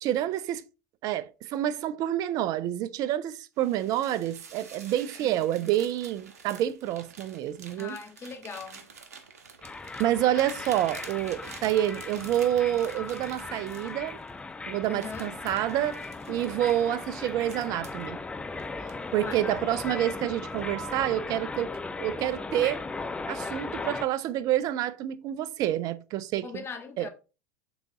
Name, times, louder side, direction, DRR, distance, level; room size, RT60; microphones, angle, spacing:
voice 1, 0.0-0.6 1.0-8.0 10.0-14.2 14.7-16.0 16.3-18.2 19.1-21.7 22.0-22.8 23.3-26.5 27.0-27.1, right 12 dB, 45° right, 0.6 m, -28 dB
sound 1, 3.6-14.3 14.8-18.1 18.6-19.5 19.8-20.1 20.6-21.1, right 6 dB, 80° right, 1.1 m, -48 dB
voice 2, 7.8-8.9 14.9-15.3 19.2-19.5 26.4-27.1, left 5 dB, 30° left, 1.4 m, -40 dB
sound 2, 9.6-24.1, left 3 dB, 10° left, 0.6 m, -38 dB
6.9 x 4.0 x 3.8 m
hypercardioid pair, 85°, 8 cm